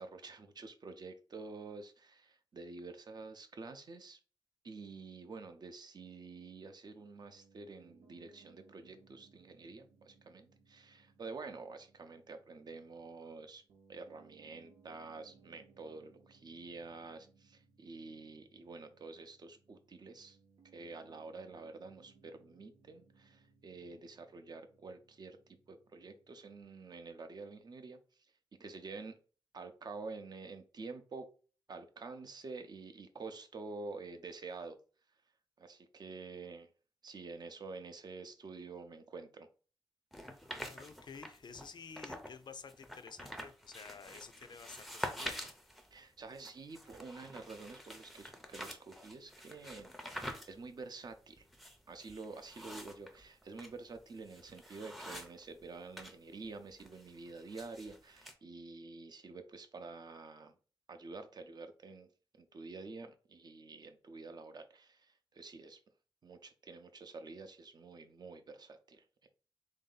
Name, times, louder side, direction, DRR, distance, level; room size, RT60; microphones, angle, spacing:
voice 1, 0.0-4.2 4.6-13.6 13.9-20.4 20.7-25.4 25.7-28.0 28.6-29.2 29.5-31.3 31.7-34.8 35.6-36.7 37.0-39.5 45.9-51.4 51.9-60.5 60.9-62.1 62.4-65.8 66.2-69.3, right 3 dB, 50° right, 0.5 m, -48 dB
Piano, 7.2-26.6, right 5 dB, 85° right, 0.8 m, -67 dB
sound 1, 40.1-42.4 42.7-56.1 56.4-58.3, equal, ahead, 0.5 m, -47 dB
voice 2, 40.6-45.5, left 5 dB, 55° left, 0.4 m, -51 dB
3.6 x 2.7 x 3.9 m
wide cardioid pair, 135°, 9 cm